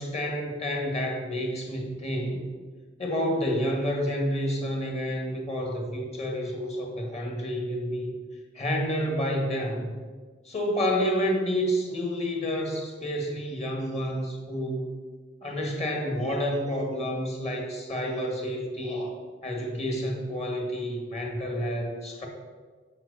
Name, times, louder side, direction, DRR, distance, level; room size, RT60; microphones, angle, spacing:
voice 1, 0.0-2.4 3.0-8.1 8.5-10.0 10.4-14.9 15.4-22.3, equal, 35° left, 1 dB, 1.6 m, -29 dB
7.9 x 4.6 x 6.8 m, 1.5 s
head